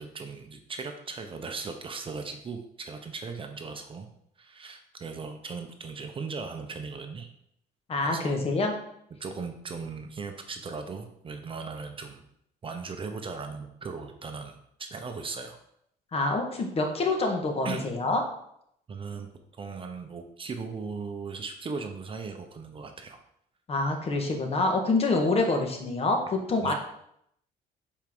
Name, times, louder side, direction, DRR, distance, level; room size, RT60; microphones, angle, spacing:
voice 1, 0.0-4.1 4.4-7.3 8.0-8.4 9.2-12.2 12.6-15.6 17.6-17.8 18.9-19.3 19.6-23.2 26.6-26.7, right 4 dB, 30° right, 5 dB, 0.7 m, -38 dB
voice 2, 7.9-8.7 16.1-18.2 23.7-26.7, left 2 dB, 35° left, 3 dB, 1.3 m, -26 dB
7.3 x 4.6 x 3.7 m, 0.73 s
cardioid pair, 110°, 17 cm